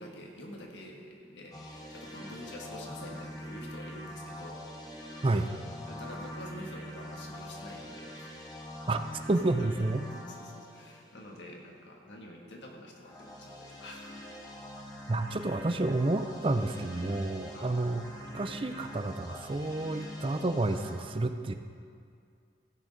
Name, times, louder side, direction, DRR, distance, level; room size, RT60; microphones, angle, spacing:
voice 1, 0.0-4.6 5.9-8.3 10.1-14.1 17.4-17.8, left 1 dB, 85° left, 0 dB, 1.6 m, -47 dB
sound 1, 1.5-11.6 13.0-21.0, left 1 dB, 20° left, 1.3 m, -44 dB
voice 2, 9.3-10.0 15.1-18.0 18.3-21.5, right 2 dB, 30° right, 8 dB, 0.5 m, -30 dB
15.0 x 6.6 x 5.1 m, 2.3 s
head